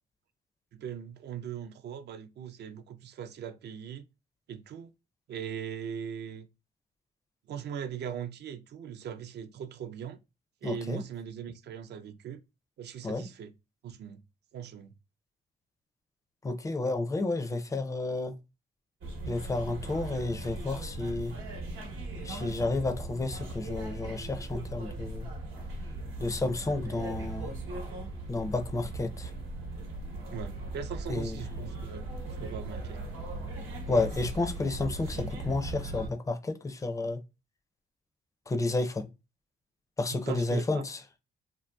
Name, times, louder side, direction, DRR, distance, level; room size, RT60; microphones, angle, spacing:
voice 1, 0.7-4.1 4.5-4.9 5.3-6.5 7.5-10.2 10.6-12.4 12.8-13.5 13.8-14.2 14.5-14.9 30.3-32.1 32.4-33.1 40.1-40.8, right 8 dB, 60° right, 0.4 m, -40 dB
voice 2, 10.6-11.0 13.0-13.3 16.4-18.4 19.3-21.3 22.2-25.3 26.2-27.5 28.3-29.3 31.1-31.4 33.9-37.2 38.5-39.1 40.0-41.0, left 2 dB, 15° left, 0.4 m, -31 dB
sound 1, 19.0-36.1, right 2 dB, 85° right, 1.0 m, -38 dB
2.8 x 2.6 x 2.2 m
cardioid pair, 90°, 20 cm